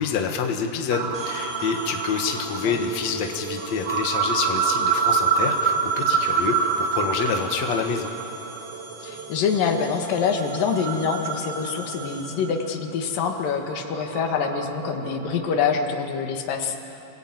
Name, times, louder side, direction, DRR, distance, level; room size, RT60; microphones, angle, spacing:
voice 1, 0.0-8.1, left 6 dB, 60° left, 3 dB, 2.6 m, -27 dB
sound 1, 0.9-15.6, right 6 dB, 75° right, 3.0 m, -28 dB
sound 2, 1.1-12.5, right 1 dB, 25° right, 5.3 m, -44 dB
voice 2, 9.0-17.0, left 6 dB, 90° left, 4 dB, 3.4 m, -25 dB
27.5 x 20.0 x 9.1 m, 3.0 s
omnidirectional pair, 3.8 m